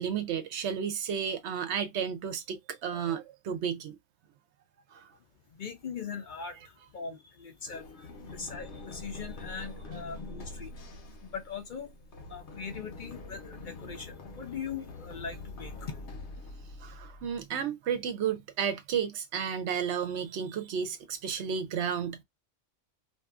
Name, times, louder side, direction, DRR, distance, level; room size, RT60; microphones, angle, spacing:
voice 1, 0.0-4.0 4.9-5.1 16.8-22.2, right 7 dB, 75° right, 0.8 m, -32 dB
voice 2, 5.5-10.7 11.2-16.0, left 6 dB, 55° left, 0.6 m, -41 dB
Run, 7.7-17.4, left 2 dB, 70° left, 1.1 m, -44 dB
2.6 x 2.4 x 2.3 m
omnidirectional pair, 1.2 m